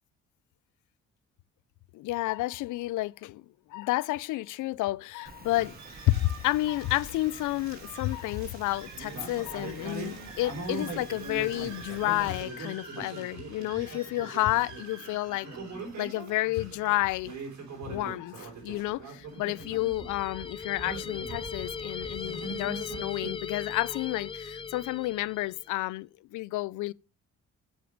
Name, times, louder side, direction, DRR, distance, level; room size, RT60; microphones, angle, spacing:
voice 1, 1.9-5.8 6.1-15.5 16.0-17.3 17.8-26.9, left 17 dB, 80° left, 0.5 m, -30 dB
Rain, 5.3-12.4, right 5 dB, 30° right, 1.2 m, -50 dB
sound 1, 5.5-23.3, right 3 dB, 65° right, 4.9 m, -41 dB
sound 2, 19.3-25.7, left 5 dB, 20° left, 0.4 m, -39 dB
8.0 x 6.6 x 5.2 m
cardioid pair, 90°, 30 cm